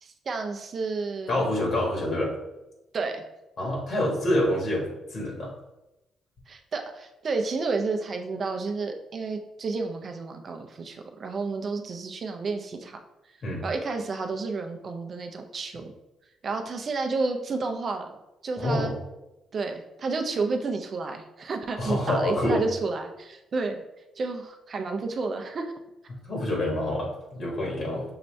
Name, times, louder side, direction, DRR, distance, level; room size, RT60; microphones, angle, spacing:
voice 1, 0.0-1.6 2.9-3.2 6.5-13.0 13.6-15.9 16.4-18.1 18.4-19.0 19.5-23.8 24.2-25.7, right 3 dB, 45° right, 5 dB, 0.6 m, -31 dB
voice 2, 1.3-2.3 3.6-5.5 13.4-13.6 18.6-18.9 21.8-22.6 26.2-28.0, left 1 dB, 55° left, -2 dB, 1.4 m, -27 dB
5.7 x 2.6 x 3.2 m, 0.94 s
cardioid pair, 90°, 0 cm